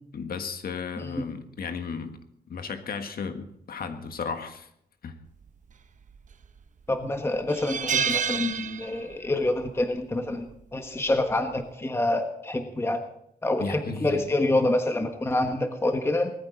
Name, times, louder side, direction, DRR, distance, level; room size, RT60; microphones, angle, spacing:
voice 1, 0.1-2.2 2.5-4.7 5.0-5.1 13.6-14.2, left 5 dB, 65° left, 7 dB, 1.6 m, -34 dB
sound 1, 6.1-6.6 7.0-7.1 7.5-9.3 9.6-9.8 11.1-11.4, right 7 dB, 50° right, 0.9 m, -29 dB
voice 2, 6.9-13.0 13.4-16.3, left 2 dB, 15° left, 6 dB, 1.2 m, -27 dB
19.0 x 14.0 x 4.0 m, 0.72 s
wide cardioid pair, 125°, 16 cm